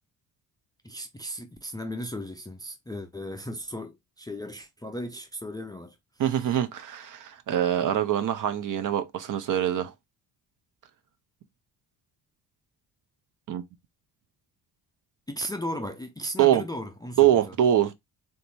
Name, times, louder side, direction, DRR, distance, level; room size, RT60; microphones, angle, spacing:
voice 1, 0.8-6.0 15.3-17.6, equal, 10° left, 0.4 m, -36 dB
voice 2, 6.2-9.9 13.5-13.6 16.4-16.6 17.2-18.0, right 11 dB, 45° right, 0.5 m, -24 dB
3.4 x 2.7 x 2.6 m
hypercardioid pair, 45°, 48 cm